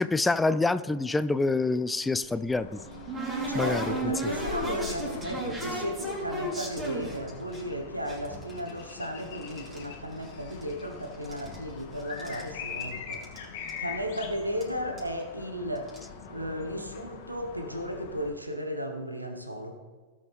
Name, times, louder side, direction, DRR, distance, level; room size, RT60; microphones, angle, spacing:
voice 1, 0.0-2.8 3.5-3.8, left 3 dB, 10° left, 15 dB, 0.3 m, -26 dB
sound 1, 2.1-7.6 8.1-9.8 10.1-10.9 11.1-12.5 12.8-12.9 13.1-13.4 13.7-13.8 14.6-14.7 15.0-15.2 15.8-16.0, right 2 dB, 20° right, 3.4 m, -35 dB
sound 2, 2.5-18.3, left 6 dB, 50° left, 1.5 m, -43 dB
voice 2, 3.5-13.2 13.8-16.0 16.3-19.8, equal, 85° right, 5 dB, 1.3 m, -35 dB
17.5 x 7.1 x 3.5 m, 1.3 s
figure-of-eight pair, 90°, 0 cm